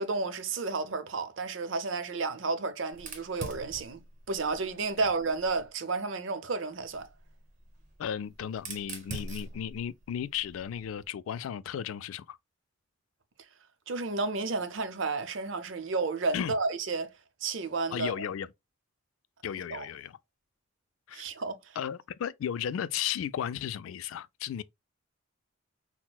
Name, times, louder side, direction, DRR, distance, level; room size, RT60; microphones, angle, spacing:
voice 1, 0.0-7.1 13.9-17.1 17.4-18.1 19.7-19.8 21.1-21.8, right 3 dB, 65° right, 0.6 m, -32 dB
Fire, 2.9-5.7 6.8-11.1, right 3 dB, 35° right, 0.9 m, -45 dB
voice 2, 8.0-12.4 16.3-16.5 17.9-18.5 19.4-20.2 21.1-21.3 21.8-24.6, left 9 dB, 80° left, 0.3 m, -34 dB
5.9 x 2.1 x 2.2 m
head